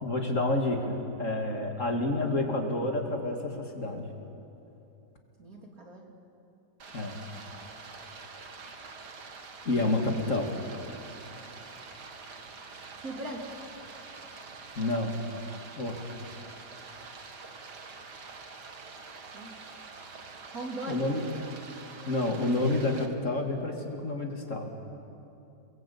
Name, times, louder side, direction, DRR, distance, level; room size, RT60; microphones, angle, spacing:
voice 1, 0.0-4.1 6.9-7.2 9.6-10.5 14.8-15.1 15.8-16.0 20.9-21.2 22.1-24.7, left 2 dB, 50° left, 2 dB, 2.7 m, -29 dB
voice 2, 5.4-6.1 13.0-13.5 19.3-19.7 20.5-21.0, right 2 dB, 55° right, 0 dB, 3.4 m, -39 dB
Stream, 6.8-23.1, right 4 dB, 75° right, 2.3 m, -46 dB
29.0 x 20.5 x 8.6 m, 2.8 s
omnidirectional pair, 1.8 m